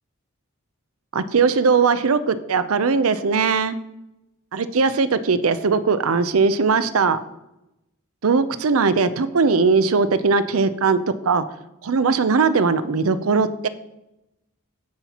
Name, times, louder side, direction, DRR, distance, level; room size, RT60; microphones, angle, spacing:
voice 1, 1.1-3.7 4.5-7.2 8.2-11.5 11.8-13.7, right 4 dB, 75° right, 13 dB, 0.6 m, -19 dB
16.0 x 5.7 x 2.9 m, 0.90 s
head